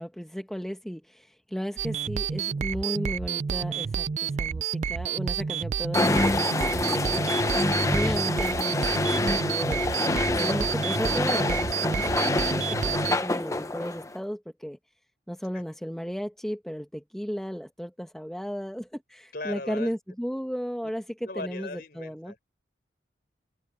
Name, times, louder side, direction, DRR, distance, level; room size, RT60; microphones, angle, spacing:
voice 1, 0.0-7.5 7.9-9.9 10.4-14.8 15.3-22.3, equal, ahead, 1.0 m, -34 dB
sound 1, 1.8-13.2, right 7 dB, 40° right, 0.3 m, -30 dB
sound 2, 5.9-14.1, left 2 dB, 15° left, 0.7 m, -26 dB
voice 2, 19.3-19.9 20.8-20.9 21.2-22.5, left 2 dB, 55° left, 4.7 m, -38 dB
head